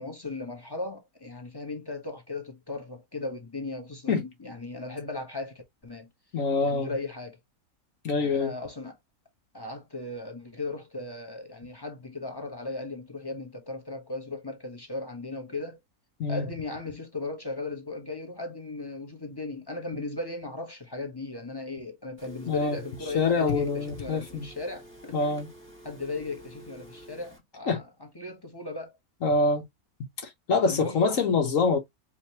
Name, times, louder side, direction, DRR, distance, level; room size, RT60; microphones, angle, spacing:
voice 1, 0.0-6.1 6.6-7.4 8.1-9.0 9.5-15.8 16.3-25.4 25.8-29.0 30.7-31.2, left 3 dB, 20° left, 1.0 m, -37 dB
voice 2, 6.3-6.9 8.0-8.5 16.2-16.4 22.5-22.8 23.1-24.5 25.1-25.5 27.7-27.8 29.2-29.6 30.5-31.8, left 4 dB, 60° left, 1.3 m, -25 dB
Telephone, 22.2-27.4, right 1 dB, 10° right, 1.8 m, -49 dB
5.1 x 2.9 x 2.9 m
omnidirectional pair, 1.6 m